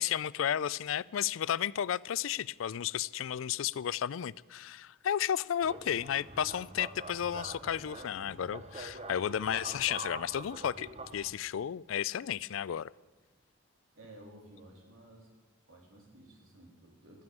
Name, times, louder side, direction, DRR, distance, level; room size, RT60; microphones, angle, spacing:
voice 1, 0.0-10.9 11.1-12.9, left 9 dB, 80° left, 21 dB, 0.4 m, -33 dB
sound 1, 5.6-11.3, right 2 dB, 30° right, 1.0 m, -45 dB
voice 2, 13.9-15.3 15.7-17.2, right 1 dB, 90° right, 0 dB, 3.4 m, -54 dB
13.0 x 9.4 x 9.1 m, 1.2 s
head